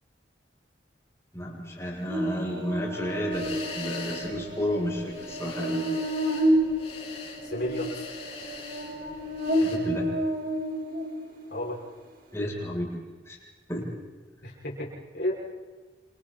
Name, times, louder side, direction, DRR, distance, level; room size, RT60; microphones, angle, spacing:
voice 1, 1.3-5.9 9.6-10.1 12.3-13.4 13.7-13.9, equal, 15° left, -4 dB, 7.7 m, -32 dB
Buzz, 2.1-11.5, equal, 50° right, 3.3 m, -30 dB
sound 1, 3.3-9.8, left 4 dB, 35° left, 7.8 m, -42 dB
voice 2, 7.4-8.1 11.5-11.8 14.4-15.3, left 1 dB, 65° left, -3 dB, 6.2 m, -32 dB
28.0 x 27.5 x 4.4 m, 1.3 s
head